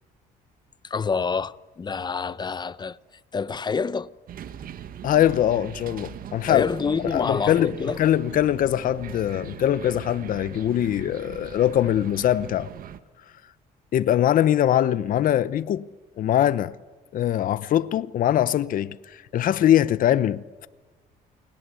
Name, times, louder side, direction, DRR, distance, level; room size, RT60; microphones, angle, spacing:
voice 1, 0.8-3.0 3.3-4.1 6.5-8.0, left 5 dB, 25° left, 0.8 m, -27 dB
sound 1, 4.3-13.0, right 9 dB, 60° right, 1.6 m, -40 dB
voice 2, 5.0-6.7 7.1-12.7 13.9-15.9 16.2-16.7 17.1-20.7, left 11 dB, 55° left, 0.8 m, -22 dB
29.0 x 20.5 x 8.4 m
cardioid pair, 110°, 17 cm